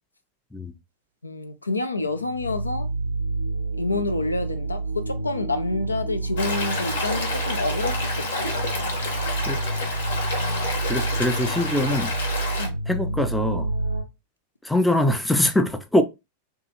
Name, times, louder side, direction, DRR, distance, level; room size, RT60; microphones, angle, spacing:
voice 1, 1.2-2.9 3.8-9.0 10.4-10.8 12.6-12.8, left 2 dB, 80° left, 0.4 m, -29 dB
sound 1, 2.0-14.0, right 2 dB, 85° right, 0.4 m, -29 dB
Stream, 6.4-12.7, left 2 dB, 60° left, 0.8 m, -29 dB
voice 2, 10.9-12.1 12.9-13.7 14.6-16.0, left 1 dB, 5° left, 0.4 m, -23 dB
2.7 x 2.3 x 2.8 m
figure-of-eight pair, 90°, 0 cm